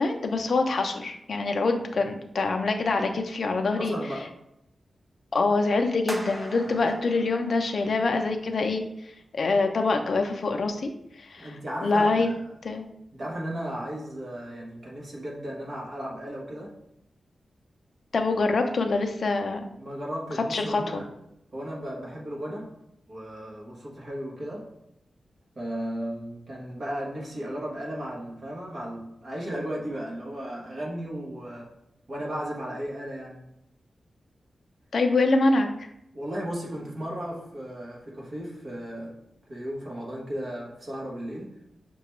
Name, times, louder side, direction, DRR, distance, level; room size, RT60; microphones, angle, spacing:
voice 1, 0.0-3.9 5.3-8.8 9.3-10.9 11.3-11.5 11.8-12.3 12.6-12.9 18.1-19.6 20.5-21.0 34.9-35.9, left 3 dB, 55° left, 5 dB, 0.4 m, -25 dB
voice 2, 3.8-4.3 6.8-6.9 11.4-12.6 13.1-16.7 19.8-21.1 21.5-22.7 23.1-24.7 25.6-31.7 32.1-33.4 36.1-39.2 39.5-41.5, equal, 45° right, -2 dB, 1.0 m, -35 dB
sound 1, 6.1-8.3, right 1 dB, 15° right, 0.3 m, -40 dB
5.7 x 2.3 x 3.0 m, 0.81 s
wide cardioid pair, 140°, 0 cm